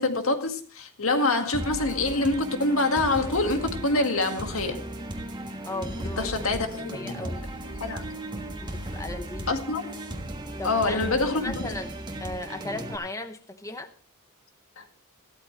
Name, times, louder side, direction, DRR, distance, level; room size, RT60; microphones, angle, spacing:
voice 1, 0.0-4.8 6.2-7.3 7.8-8.0 9.5-9.9 10.6-11.5 14.8-14.9, left 2 dB, 75° left, 1.9 m, -26 dB
sound 1, 1.5-13.0, right 1 dB, 20° right, 1.4 m, -36 dB
voice 2, 5.6-7.5 8.6-9.6 10.6-13.9, left 2 dB, 15° left, 0.9 m, -37 dB
15.0 x 13.0 x 3.2 m
head